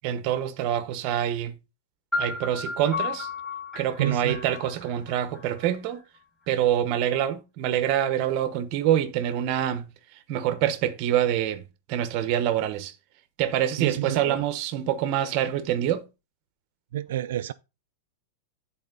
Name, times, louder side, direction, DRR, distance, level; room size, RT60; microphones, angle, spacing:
voice 1, 0.0-1.6 2.2-3.3 3.8-6.0 6.5-9.9 10.3-11.6 11.9-12.9 13.4-16.0, right 11 dB, 35° right, 0.9 m, -26 dB
sound 1, 2.1-6.0, left 4 dB, 5° left, 5.3 m, -34 dB
voice 2, 4.0-4.4 13.8-14.5 16.9-17.5, right 13 dB, 70° right, 0.4 m, -29 dB
10.5 x 4.3 x 3.9 m
supercardioid pair, 175°, 0 cm